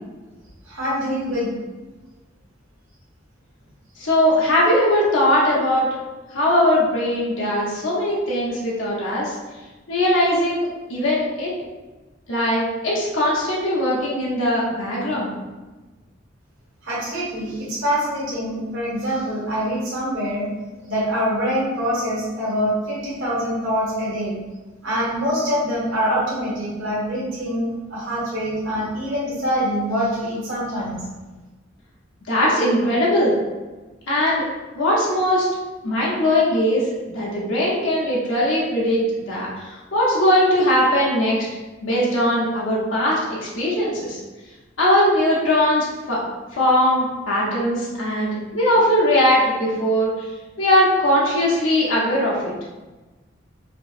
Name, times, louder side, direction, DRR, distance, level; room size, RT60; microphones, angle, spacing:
voice 1, 0.7-1.6 16.8-20.5 20.9-24.3 24.8-31.0, equal, 85° right, -7 dB, 1.4 m, -24 dB
voice 2, 4.0-5.9 6.3-9.4 9.9-11.5 12.3-15.3 32.3-33.3 34.1-34.4 34.7-35.5 35.8-36.8 37.1-41.5 41.8-44.2 44.8-46.2 46.5-50.3 50.6-52.4, left 1 dB, 90° left, -5 dB, 0.8 m, -20 dB
4.4 x 2.0 x 2.5 m, 1.2 s
head